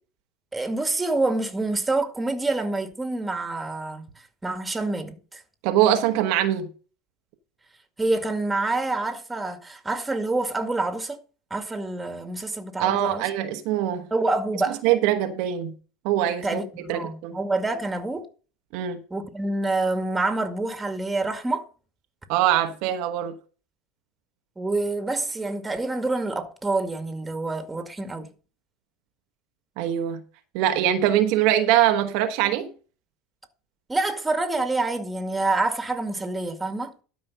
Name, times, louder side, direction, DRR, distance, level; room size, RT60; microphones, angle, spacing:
voice 1, 0.5-4.1 4.4-5.4 8.0-11.2 11.5-13.2 14.1-14.8 16.4-18.3 19.1-21.7 24.6-28.3 33.9-36.9, right 2 dB, 15° right, 2.1 m, -27 dB
voice 2, 5.6-6.7 12.8-14.1 14.8-15.7 16.0-16.6 16.9-17.4 18.7-19.0 22.3-23.4 29.8-30.2 30.5-32.7, right 11 dB, 60° right, 1.2 m, -22 dB
12.5 x 5.3 x 5.3 m
hypercardioid pair, 85°, 0 cm